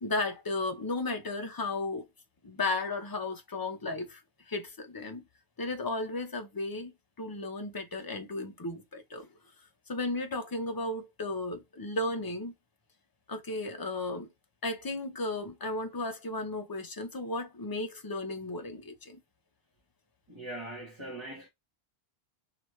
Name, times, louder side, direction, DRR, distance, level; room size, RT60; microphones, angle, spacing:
voice 1, 0.0-2.1 2.4-4.2 4.5-5.2 5.6-6.9 7.2-9.3 9.9-12.5 13.3-14.3 14.6-19.2, left 2 dB, 25° left, 0.7 m, -34 dB
voice 2, 20.3-21.5, right 1 dB, 25° right, 1.5 m, -41 dB
4.8 x 3.4 x 3.1 m
omnidirectional pair, 1.1 m